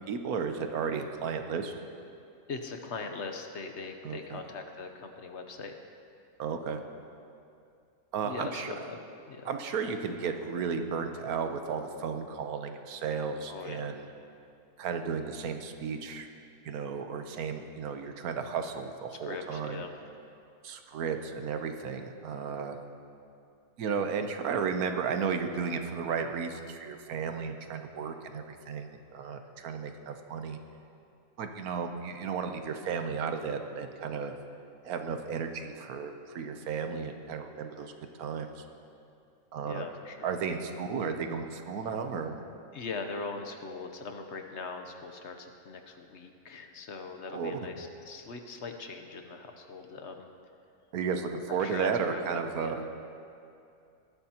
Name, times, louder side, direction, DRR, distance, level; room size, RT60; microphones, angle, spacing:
voice 1, 0.1-1.7 4.0-4.4 6.4-6.8 8.1-8.7 9.4-14.1 14.8-16.3 16.6-19.8 20.6-22.8 23.8-30.6 31.4-34.3 34.8-37.9 38.2-38.6 39.5-39.8 40.2-42.4 47.3-47.6 50.9-52.8, right 6 dB, 75° right, 6 dB, 1.3 m, -34 dB
voice 2, 2.5-5.7 8.2-9.0 9.3-9.5 13.5-13.9 19.2-19.9 39.6-40.7 42.7-50.3 51.6-52.8, left 4 dB, 55° left, 5 dB, 1.0 m, -41 dB
19.0 x 13.0 x 2.9 m, 2.6 s
omnidirectional pair, 1.6 m